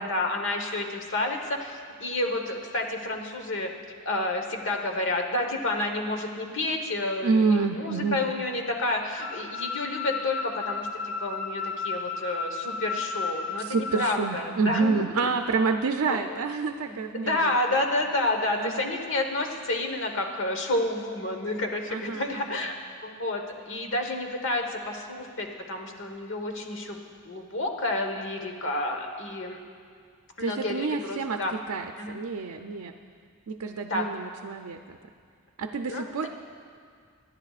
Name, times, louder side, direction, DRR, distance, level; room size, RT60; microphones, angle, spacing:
voice 1, 0.0-3.7 4.0-10.9 11.2-15.0 16.1-16.4 17.1-22.7 23.0-27.0 27.2-29.6 30.4-31.5 32.0-32.1 33.9-34.1 35.9-36.3, left 2 dB, 60° left, 3 dB, 1.2 m, -30 dB
voice 2, 7.2-8.2 13.6-17.6 18.6-18.9 21.9-22.6 30.4-32.9 33.5-35.0 35.6-36.3, right 4 dB, 85° right, 5 dB, 0.5 m, -28 dB
sound 1, 9.2-14.0, left 4 dB, 40° left, 1.5 m, -33 dB
24.5 x 10.5 x 2.4 m, 2.1 s
head